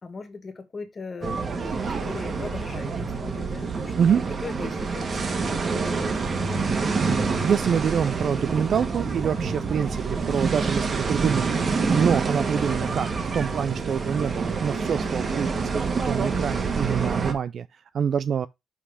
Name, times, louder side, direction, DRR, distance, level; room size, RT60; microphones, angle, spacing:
voice 1, 0.0-3.9 4.4-6.3, left 4 dB, 35° left, 1.9 m, -39 dB
sound 1, 1.2-17.3, right 4 dB, 40° right, 1.5 m, -27 dB
voice 2, 7.1-18.5, right 7 dB, 55° right, 0.4 m, -26 dB
5.7 x 4.8 x 4.8 m
cardioid pair, 90°, 0 cm